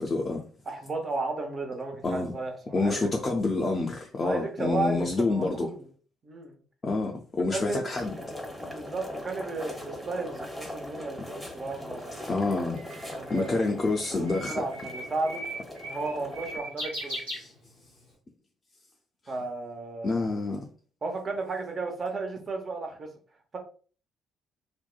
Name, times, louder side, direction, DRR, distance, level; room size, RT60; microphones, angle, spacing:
voice 1, 0.1-0.4 2.0-2.3 2.7-5.7 6.8-8.1 12.3-12.8 13.3-14.6 17.4-17.5 20.0-20.6, left 3 dB, 35° left, 0.4 m, -28 dB
voice 2, 0.7-3.1 4.2-5.7 6.2-6.5 7.5-7.8 8.6-12.3 13.1-13.7 14.1-15.4 15.9-17.2 19.3-20.2 21.0-23.1, right 3 dB, 40° right, 0.7 m, -34 dB
sound 1, 8.0-16.6, left 1 dB, ahead, 0.8 m, -40 dB
Bird, 11.8-18.0, right 1 dB, 80° right, 1.2 m, -39 dB
2.6 x 2.1 x 2.3 m
figure-of-eight pair, 45°, 0 cm